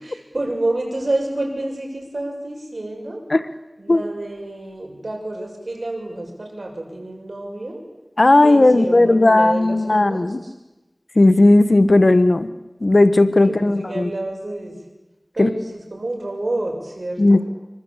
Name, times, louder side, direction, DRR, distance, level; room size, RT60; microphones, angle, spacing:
voice 1, 0.0-3.2 3.8-7.8 8.4-10.5 13.4-14.8 15.3-17.4, right 2 dB, 80° right, 2 dB, 6.9 m, -28 dB
voice 2, 8.2-10.4 11.1-12.5 12.8-14.1 15.4-15.5 17.2-17.4, left 2 dB, 70° left, 12 dB, 1.5 m, -15 dB
25.5 x 24.5 x 8.4 m, 1.0 s
wide cardioid pair, 45°, 0 cm